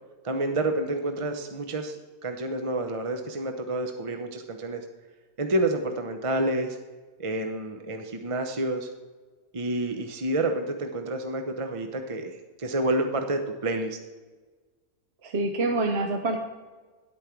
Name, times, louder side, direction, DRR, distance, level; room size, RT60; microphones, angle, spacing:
voice 1, 0.2-4.8 5.4-6.8 7.2-8.9 9.5-14.0, right 1 dB, 30° right, 5 dB, 0.6 m, -29 dB
voice 2, 15.2-16.4, right 2 dB, 55° right, 4 dB, 1.0 m, -26 dB
10.5 x 8.7 x 4.5 m, 1.3 s
omnidirectional pair, 1.5 m